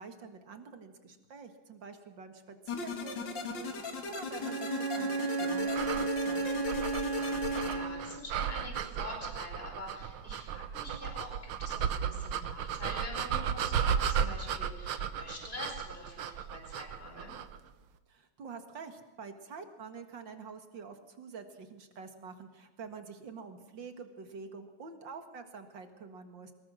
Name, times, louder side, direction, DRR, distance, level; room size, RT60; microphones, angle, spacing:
voice 1, 0.0-6.6 18.1-26.5, right 5 dB, 65° right, 7 dB, 2.5 m, -47 dB
sound 1, 2.7-7.7, left 4 dB, 65° left, 2.7 m, -38 dB
Bowed string instrument, 4.4-8.2, right 4 dB, 30° right, 3.0 m, -33 dB
sound 2, 5.7-17.6, right 8 dB, 90° right, 1.9 m, -35 dB
voice 2, 7.6-17.3, left 2 dB, 25° left, 2 dB, 5.1 m, -45 dB
23.5 x 21.0 x 6.4 m, 1.1 s
omnidirectional pair, 2.2 m